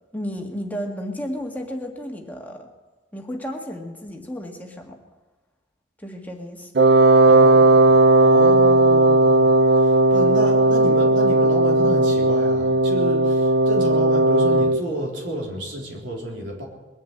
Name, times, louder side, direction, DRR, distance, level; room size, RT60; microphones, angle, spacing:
voice 1, 0.1-2.7 3.1-5.0 6.0-6.7, equal, 10° left, 1 dB, 1.8 m, -33 dB
Wind instrument woodwind instrument, 6.8-14.8, right 2 dB, 60° right, 0.6 m, -16 dB
voice 2, 7.2-16.6, right 1 dB, 90° right, -1 dB, 3.7 m, -30 dB
21.5 x 7.4 x 8.7 m, 1.2 s
head